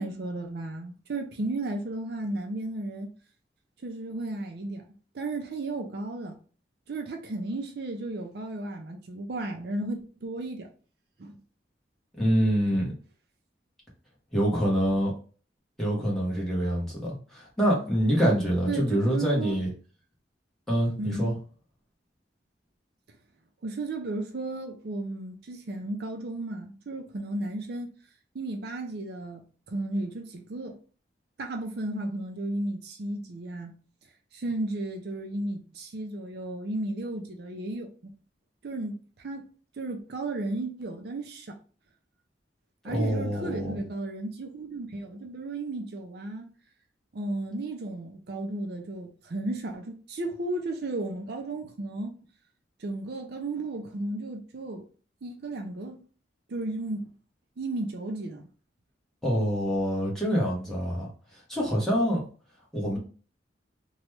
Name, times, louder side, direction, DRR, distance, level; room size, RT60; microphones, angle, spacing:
voice 1, 0.0-3.1 3.8-4.8 5.1-6.4 6.9-10.7 11.2-11.4 12.7-12.8 18.7-19.6 21.0-21.3 23.6-27.9 28.3-30.8 31.4-33.8 34.3-38.1 38.6-39.5 39.8-41.6 42.8-46.5 47.1-52.1 52.8-54.9 55.2-56.0 56.5-57.1 57.6-58.5, right 2 dB, 60° right, 0.5 m, -34 dB
voice 2, 12.2-12.9 14.3-15.1 15.8-19.7 20.7-21.3 42.9-43.7 59.2-61.1 61.5-62.2 62.7-63.0, equal, ahead, 1.2 m, -25 dB
2.9 x 2.3 x 3.2 m
head